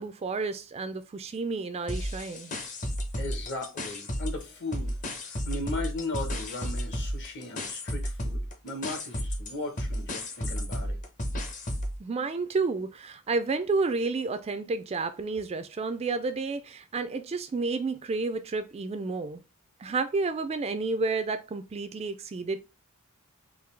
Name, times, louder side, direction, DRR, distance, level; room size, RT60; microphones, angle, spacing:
voice 1, 0.0-2.5 12.0-19.4 19.8-22.6, right 3 dB, 30° right, 0.3 m, -30 dB
sound 1, 1.9-4.4 4.7-12.0, equal, 35° left, 0.7 m, -33 dB
voice 2, 3.2-4.9 5.2-11.0, left 2 dB, 55° left, 1.1 m, -37 dB
3.7 x 2.6 x 3.2 m
head